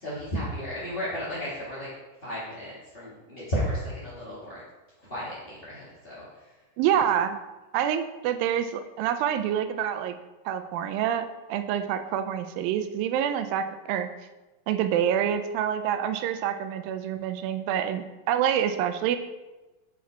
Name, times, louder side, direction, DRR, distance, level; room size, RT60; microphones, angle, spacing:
voice 1, 0.0-1.9 2.2-4.6 5.1-6.2, equal, 35° left, -9 dB, 0.9 m, -33 dB
voice 2, 6.8-7.4 7.7-10.2 10.5-14.1 14.7-19.2, right 9 dB, 90° right, 9 dB, 2.3 m, -27 dB
7.1 x 4.8 x 4.5 m, 1.1 s
omnidirectional pair, 4.0 m